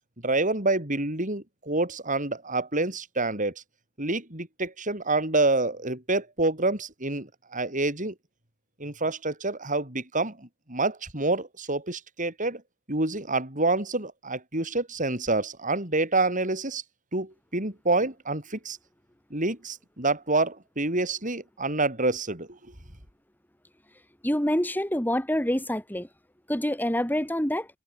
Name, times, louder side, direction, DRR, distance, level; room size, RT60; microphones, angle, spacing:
voice 1, 0.2-3.5 4.0-8.1 8.8-12.6 12.9-16.8 17.1-18.8 19.3-22.6, right 2 dB, 35° right, 6.9 m, -27 dB
voice 2, 24.2-26.1 26.5-27.7, equal, 10° left, 4.1 m, -26 dB
open air
head